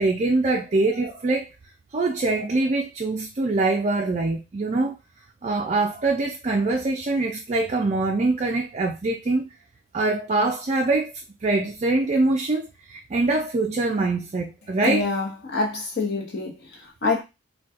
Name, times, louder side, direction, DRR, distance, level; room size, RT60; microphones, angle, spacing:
voice 1, 0.0-1.5 1.9-5.0 5.4-9.5 9.9-15.0, right 2 dB, 30° right, 0.3 m, -24 dB
voice 2, 14.8-17.2, left 3 dB, 50° left, 0.9 m, -26 dB
4.0 x 2.3 x 2.4 m
head